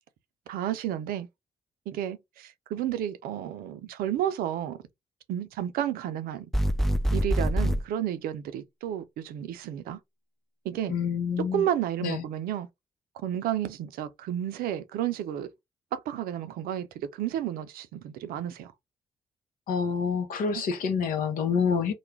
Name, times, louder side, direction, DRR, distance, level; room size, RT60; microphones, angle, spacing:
voice 1, 0.5-1.3 1.9-4.8 5.3-6.5 7.1-10.0 10.6-10.9 11.5-12.7 13.2-15.5 15.9-18.7 20.5-20.6, right 11 dB, 75° right, 0.5 m, -31 dB
sound 1, 6.5-7.8, equal, ahead, 0.3 m, -24 dB
voice 2, 10.9-11.6 12.0-12.2 19.7-21.9, left 6 dB, 70° left, 0.7 m, -27 dB
2.3 x 2.1 x 3.1 m
hypercardioid pair, 50°, 15 cm